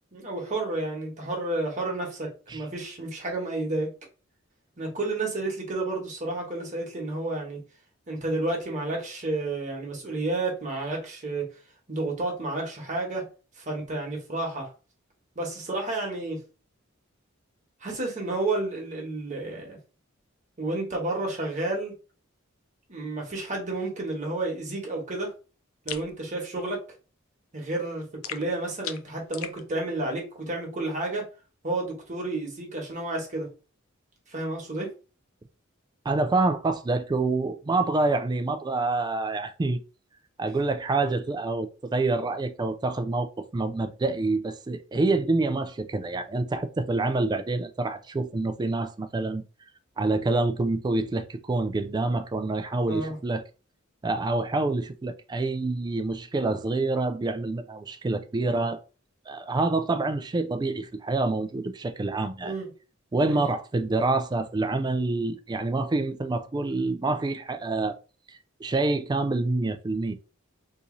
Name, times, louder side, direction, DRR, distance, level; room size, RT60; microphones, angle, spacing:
voice 1, 0.1-3.9 4.8-7.6 8.1-11.5 11.9-13.3 13.6-14.7 15.3-16.4 17.8-19.8 20.6-21.9 22.9-25.3 25.8-26.8 27.5-31.3 31.6-33.5 34.3-34.9 52.9-53.2 62.4-62.7 63.2-63.4, right 2 dB, 35° right, 1.2 m, -31 dB
sound 1, 25.9-26.1 28.2-29.6, left 10 dB, 85° left, 0.5 m, -37 dB
voice 2, 36.1-39.8 40.4-49.4 50.0-53.4 54.0-58.8 59.3-62.5 63.1-68.0 68.3-70.1, right 3 dB, 20° right, 0.3 m, -27 dB
2.9 x 2.6 x 3.8 m
head